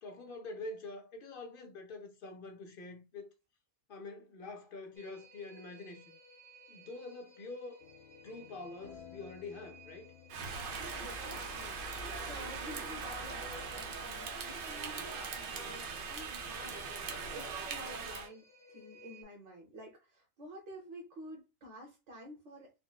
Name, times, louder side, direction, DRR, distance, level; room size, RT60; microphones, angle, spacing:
voice 1, 0.0-3.3 3.9-6.0 6.7-7.8 8.2-10.1, left 3 dB, 60° left, 0.7 m, -46 dB
sound 1, 4.9-19.2, right 1 dB, 5° left, 0.6 m, -58 dB
sound 2, 7.8-13.4, left 9 dB, 90° left, 0.9 m, -57 dB
Rain, 10.3-18.3, right 4 dB, 60° right, 0.7 m, -40 dB
voice 2, 10.9-16.8 17.3-22.7, equal, 85° right, 1.3 m, -50 dB
4.1 x 2.1 x 2.3 m
omnidirectional pair, 1.2 m